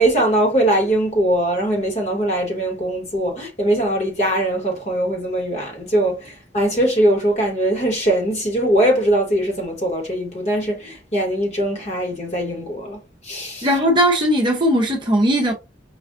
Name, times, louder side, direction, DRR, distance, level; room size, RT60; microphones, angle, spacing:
voice 1, 0.0-13.0 13.2-13.7, right 1 dB, 40° left, 1.3 m, -21 dB
voice 2, 13.6-15.5, equal, 25° right, 0.7 m, -18 dB
5.0 x 2.3 x 2.5 m
head